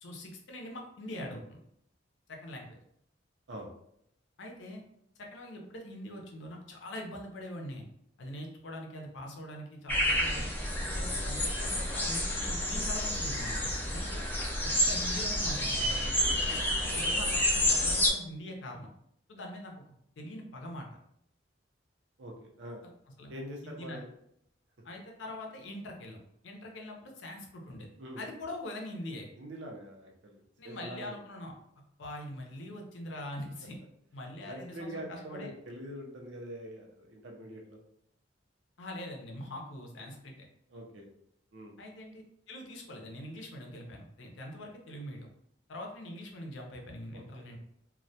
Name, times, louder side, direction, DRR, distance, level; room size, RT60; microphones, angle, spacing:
voice 1, 0.0-1.6 2.3-2.8 4.4-4.8 5.2-7.8 8.2-10.5 10.9-14.3 14.9-16.1 16.9-18.9 19.3-19.7 20.2-20.9 22.8-22.9 23.2-23.3 23.6-24.0 24.8-27.9 28.2-29.2 30.6-31.5 32.0-33.8 34.1-35.5 38.8-40.5 41.8-45.3 45.7-47.6, left 1 dB, 80° left, 1 dB, 0.5 m, -43 dB
sound 1, 9.9-18.1, left 1 dB, 10° left, 0.4 m, -29 dB
voice 2, 22.2-22.8 23.3-24.1 28.0-28.2 29.4-31.1 34.4-37.8 40.7-41.1 41.5-41.8 47.3-47.6, right 1 dB, 70° right, 1 dB, 0.5 m, -44 dB
2.2 x 2.1 x 2.6 m, 0.73 s
head